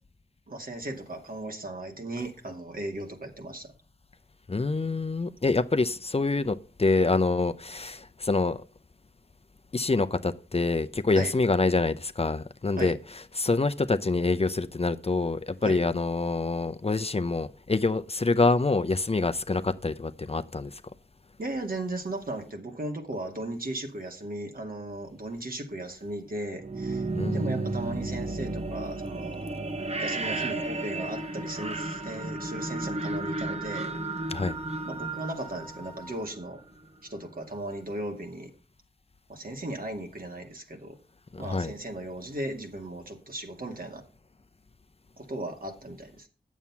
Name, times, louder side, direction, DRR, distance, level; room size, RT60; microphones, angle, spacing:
voice 1, 0.5-3.7 11.1-11.3 12.8-13.0 15.6-15.8 21.4-27.0 27.3-29.7 30.0-33.9 34.9-36.6 37.1-38.5 39.3-41.0 41.4-44.0 45.2-46.3, right 1 dB, 60° right, 2.3 m, -36 dB
voice 2, 4.5-8.6 9.7-20.8 27.1-28.0 34.3-34.5 41.3-41.7, left 3 dB, 40° left, 0.6 m, -26 dB
sound 1, 26.5-36.4, right 2 dB, 40° right, 1.3 m, -33 dB
Wind instrument woodwind instrument, 30.2-36.3, right 1 dB, 5° left, 1.6 m, -49 dB
9.3 x 7.3 x 5.7 m
cardioid pair, 45°, 17 cm